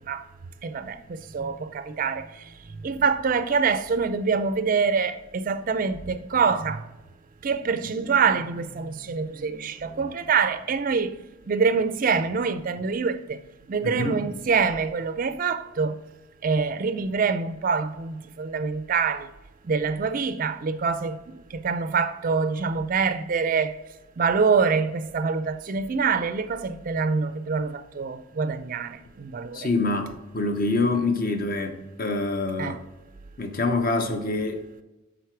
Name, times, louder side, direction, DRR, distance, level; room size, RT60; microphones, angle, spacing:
voice 1, 0.6-2.4 2.8-6.9 7.4-11.2 11.5-13.4 13.7-16.0 16.4-19.3 19.6-23.8 24.2-29.7 32.6-32.8, right 5 dB, 40° right, 0.4 m, -25 dB
voice 2, 13.8-14.2 29.5-30.1 30.3-32.8 33.4-34.6, left 3 dB, 40° left, 0.8 m, -25 dB
9.5 x 3.8 x 4.6 m
head